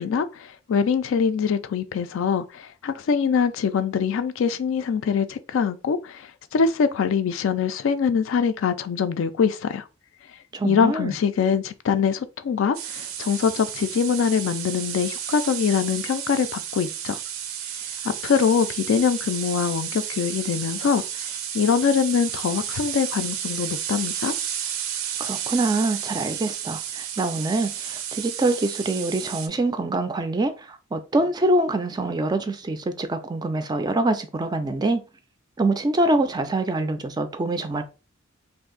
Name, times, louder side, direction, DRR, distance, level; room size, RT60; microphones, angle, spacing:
voice 1, 0.0-9.8 10.6-17.2 18.2-21.0 21.5-24.3, left 6 dB, 70° left, 0.4 m, -23 dB
voice 2, 10.5-11.1 25.2-35.0 35.6-37.8, right 2 dB, 20° right, 0.3 m, -25 dB
sound 1, 12.7-29.5, right 9 dB, 85° right, 0.5 m, -32 dB
2.6 x 2.4 x 3.7 m
head